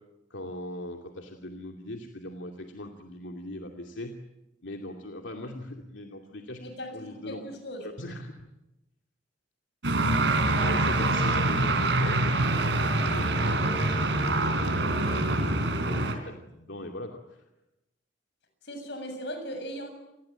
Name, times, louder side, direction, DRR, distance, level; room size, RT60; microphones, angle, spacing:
voice 1, 0.3-4.2 4.6-6.6 6.9-7.4 7.8-8.5 10.5-17.4, left 1 dB, 85° left, 3 dB, 2.6 m, -40 dB
voice 2, 6.6-7.9 11.0-11.6 18.6-19.9, equal, 65° left, 7 dB, 6.9 m, -39 dB
sound 1, 9.8-16.1, right 2 dB, 75° right, 4.1 m, -25 dB
29.0 x 20.5 x 9.1 m, 0.95 s
head